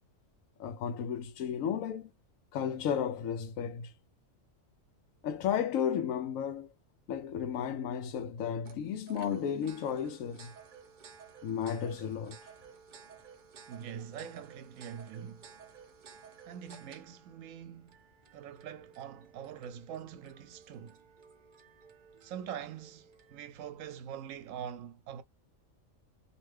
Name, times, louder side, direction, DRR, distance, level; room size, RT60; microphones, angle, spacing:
voice 1, 0.6-2.1 2.5-3.9 5.2-6.7 7.1-10.5 11.4-12.4, left 8 dB, 85° left, 1.0 m, -33 dB
sound 1, 8.7-23.4, right 6 dB, 50° right, 0.6 m, -55 dB
voice 2, 13.7-15.5 16.4-18.0 18.3-21.0 22.2-25.2, right 9 dB, 80° right, 0.9 m, -44 dB
2.8 x 2.2 x 3.1 m
omnidirectional pair, 1.4 m